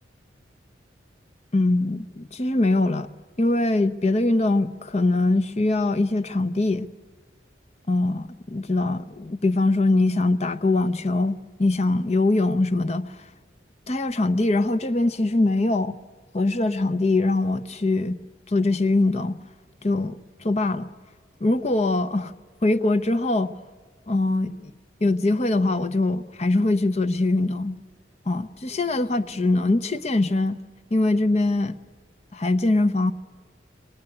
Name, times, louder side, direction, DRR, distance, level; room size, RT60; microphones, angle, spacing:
voice 1, 1.5-3.1 3.4-6.9 7.9-13.3 13.9-16.0 16.3-18.2 18.5-19.4 19.8-20.9 21.4-22.3 22.6-23.5 24.1-24.7 25.0-27.8 28.3-30.6 30.9-31.7 32.3-33.1, left 2 dB, 35° left, 0.7 m, -22 dB
25.5 x 19.5 x 9.8 m
head